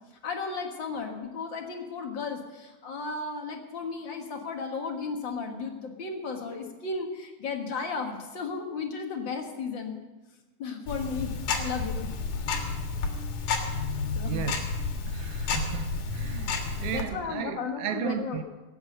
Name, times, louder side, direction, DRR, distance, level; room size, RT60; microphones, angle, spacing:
voice 1, 0.2-10.0 10.6-12.1 14.2-14.4 16.9-18.4, left 4 dB, 50° left, 1.7 m, -34 dB
Tick-tock, 10.9-17.0, left 4 dB, 90° left, 3.2 m, -31 dB
voice 2, 14.2-14.7 15.1-18.4, right 9 dB, 80° right, 1.3 m, -35 dB
17.5 x 8.6 x 6.5 m
omnidirectional pair, 3.5 m